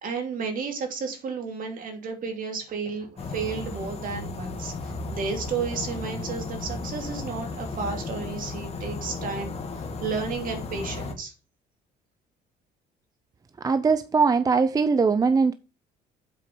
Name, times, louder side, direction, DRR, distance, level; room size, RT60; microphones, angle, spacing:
voice 1, 0.0-11.3, right 5 dB, 55° right, 2.8 m, -32 dB
sound 1, 3.2-11.1, left 3 dB, 35° left, 1.9 m, -34 dB
voice 2, 13.6-15.5, right 4 dB, 20° right, 0.5 m, -21 dB
7.7 x 4.9 x 6.7 m
cardioid pair, 110°, 17 cm